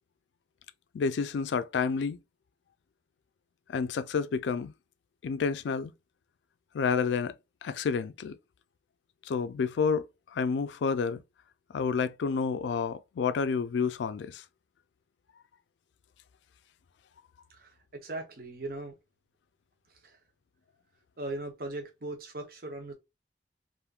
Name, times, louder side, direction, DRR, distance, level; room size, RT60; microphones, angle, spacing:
voice 1, 0.9-2.2 3.7-4.7 5.2-5.9 6.7-7.3 7.6-8.4 9.3-10.1 10.3-11.2 11.7-14.4, left 5 dB, 90° left, 0.3 m, -29 dB
voice 2, 17.5-19.0 19.9-20.2 21.2-22.9, right 2 dB, 55° right, 0.7 m, -39 dB
3.5 x 2.5 x 2.3 m
head